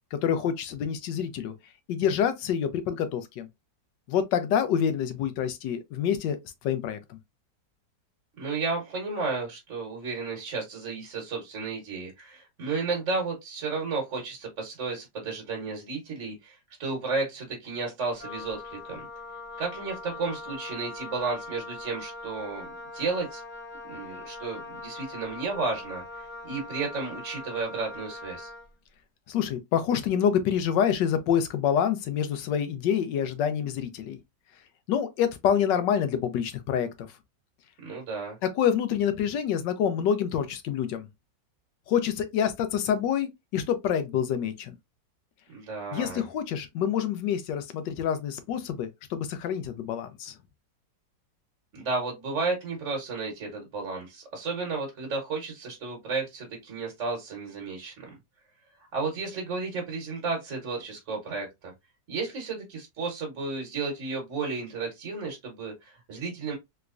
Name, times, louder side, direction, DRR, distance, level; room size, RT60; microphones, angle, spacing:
voice 1, 0.1-1.5 1.9-3.5 4.1-6.4 6.6-7.2 29.3-34.2 34.9-37.1 38.5-41.1 41.9-44.7 45.9-50.3, left 8 dB, 85° left, 1.3 m, -27 dB
voice 2, 8.4-19.1 19.6-22.7 22.9-23.4 23.8-28.5 37.8-38.4 45.5-46.2 51.7-58.1 58.9-61.7 62.1-66.6, right 4 dB, 50° right, 1.3 m, -33 dB
Wind instrument woodwind instrument, 18.1-28.7, left 2 dB, 30° left, 0.7 m, -41 dB
3.4 x 3.1 x 2.4 m
omnidirectional pair, 1.9 m